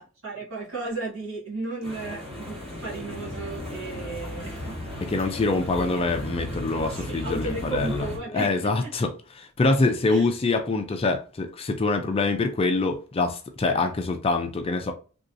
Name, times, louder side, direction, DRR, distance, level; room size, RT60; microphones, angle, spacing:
voice 1, 0.0-4.8 5.1-5.3 6.0-6.1 6.9-8.9 10.1-10.3, right 3 dB, 65° right, 1.3 m, -35 dB
sound 1, 1.8-8.2, left 1 dB, 25° right, 1.1 m, -36 dB
sound 2, 2.4-5.4, left 3 dB, 60° left, 0.9 m, -46 dB
voice 2, 5.1-8.1 8.3-9.1 9.4-14.9, left 3 dB, 25° left, 0.3 m, -25 dB
3.0 x 2.7 x 2.5 m
head